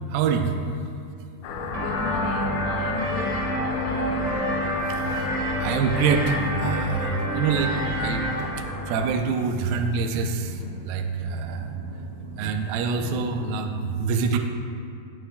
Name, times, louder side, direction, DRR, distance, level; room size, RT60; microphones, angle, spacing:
voice 1, 0.1-0.5 5.6-8.3 8.9-10.5 10.8-11.6 12.4-14.4, right 5 dB, 85° right, 4 dB, 2.1 m, -25 dB
sound 1, 1.4-9.2, left 5 dB, 90° left, 3.0 m, -33 dB
sound 2, 1.5-13.6, right 3 dB, 65° right, 1.7 m, -40 dB
voice 2, 1.7-4.4, left 3 dB, 70° left, -3 dB, 3.4 m, -35 dB
sound 3, 1.7-8.4, right 1 dB, 35° right, 1.9 m, -28 dB
15.0 x 8.8 x 2.3 m, 2.6 s
omnidirectional pair, 5.1 m